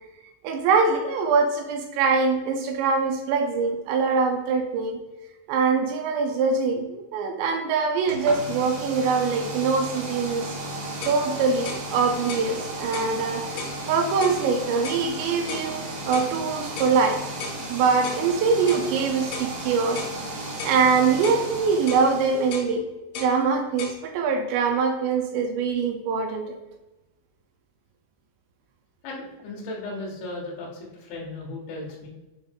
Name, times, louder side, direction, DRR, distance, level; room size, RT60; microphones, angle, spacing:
voice 1, 0.4-5.0 5.5-10.4 11.1-13.4 13.9-17.2 17.7-20.1 20.7-22.8 23.2-26.6, right 5 dB, 80° right, 3 dB, 2.6 m, -23 dB
sound 1, 8.0-22.7, right 1 dB, 55° right, 2.6 m, -35 dB
sound 2, 10.6-10.7 11.0-11.2 11.7-11.9 12.3-12.5 12.9-13.1 13.6-13.8 14.2-14.4 14.8-15.1 15.5-15.7 16.1-16.3 16.8-17.0 17.4-17.6 18.0-18.2 18.7-18.9 19.3-19.5 20.0-20.2 20.6-20.8 21.2-21.4 21.9-22.1 22.5-22.7 23.1-23.4 23.8-24.0, left 4 dB, 90° left, 3.8 m, -35 dB
voice 2, 29.0-32.1, left 2 dB, 70° left, -3 dB, 3.9 m, -36 dB
7.8 x 3.9 x 3.6 m, 1.1 s
omnidirectional pair, 5.7 m